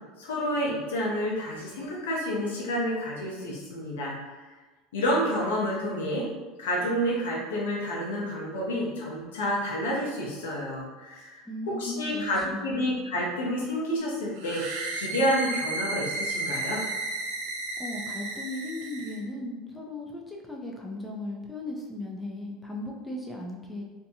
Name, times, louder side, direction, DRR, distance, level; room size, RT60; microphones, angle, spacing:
voice 1, 0.2-4.1 4.9-6.3 6.6-11.4 11.8-14.6 14.9-16.8, equal, 85° left, -3 dB, 0.7 m, -29 dB
voice 2, 11.5-12.9 17.8-23.8, left 2 dB, 10° left, -1 dB, 0.5 m, -37 dB
sound 1, 14.4-19.2, right 2 dB, 70° right, 0.5 m, -33 dB
2.6 x 2.2 x 2.8 m, 1.2 s
hypercardioid pair, 90°, 0 cm